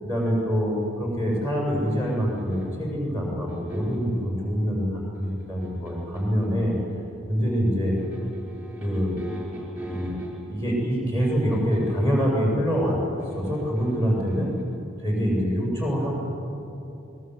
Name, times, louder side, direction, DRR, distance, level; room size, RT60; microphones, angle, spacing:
voice 1, 0.0-6.7 7.3-8.0 8.8-9.2 9.9-10.2 10.5-13.0 13.3-14.5 15.0-16.1, equal, 15° left, -3 dB, 7.4 m, -25 dB
sound 1, 1.9-2.9 3.5-4.1 5.1-6.4 8.0-10.7 11.5-12.1 13.2-14.6, equal, 5° right, 5.4 m, -40 dB
25.5 x 20.0 x 8.0 m, 2.9 s
head